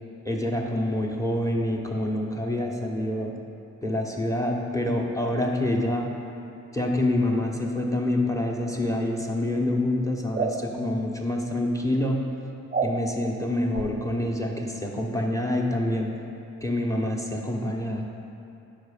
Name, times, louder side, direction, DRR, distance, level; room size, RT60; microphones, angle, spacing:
voice 1, 0.2-3.3 3.8-6.1 6.7-12.2 12.8-16.1 16.6-18.1, left 1 dB, 10° left, 1 dB, 0.8 m, -26 dB
sound 1, 10.3-10.6 12.7-12.9 13.7-13.9, right 5 dB, 30° right, 0.4 m, -26 dB
4.9 x 4.7 x 4.8 m, 2.7 s
supercardioid pair, 40°, 36 cm